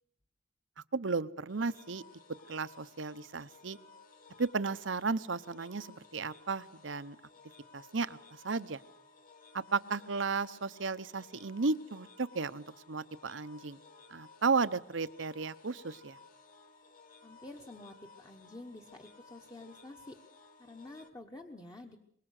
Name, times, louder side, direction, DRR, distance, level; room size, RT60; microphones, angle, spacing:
voice 1, 0.9-2.0 2.5-3.8 4.4-7.2 7.7-8.8 9.5-13.8 14.1-16.2, right 4 dB, 75° right, 14 dB, 0.9 m, -34 dB
sound 1, 1.5-21.1, left 4 dB, 45° left, 1.9 m, -58 dB
voice 2, 17.2-20.2 20.6-22.0, left 2 dB, 20° left, 3 dB, 1.3 m, -49 dB
25.0 x 21.5 x 6.6 m, 0.66 s
head